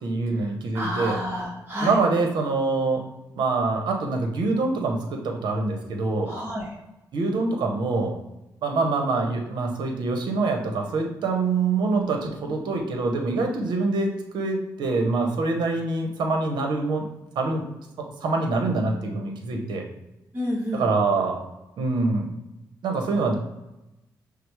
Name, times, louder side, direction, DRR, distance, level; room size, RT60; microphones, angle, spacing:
voice 1, 0.0-1.2 1.8-3.0 3.4-6.3 7.1-8.2 8.6-17.0 17.4-17.6 18.0-19.9 20.7-21.4 21.8-22.3 22.8-23.4, right 3 dB, 80° right, 3 dB, 0.7 m, -25 dB
voice 2, 0.7-1.9 6.3-6.6 20.3-20.8, equal, 25° right, -4 dB, 1.0 m, -29 dB
5.7 x 2.0 x 3.2 m, 0.95 s
cardioid pair, 60°, 8 cm